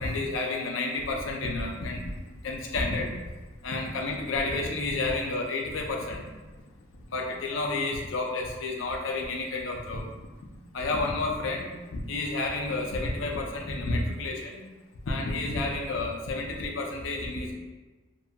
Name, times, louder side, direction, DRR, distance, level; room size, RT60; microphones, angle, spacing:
voice 1, 0.0-2.1 2.4-3.1 3.6-6.3 7.1-10.1 10.7-14.7 15.0-17.5, left 2 dB, 70° left, 1 dB, 0.4 m, -30 dB
2.9 x 2.2 x 2.7 m, 1.2 s
head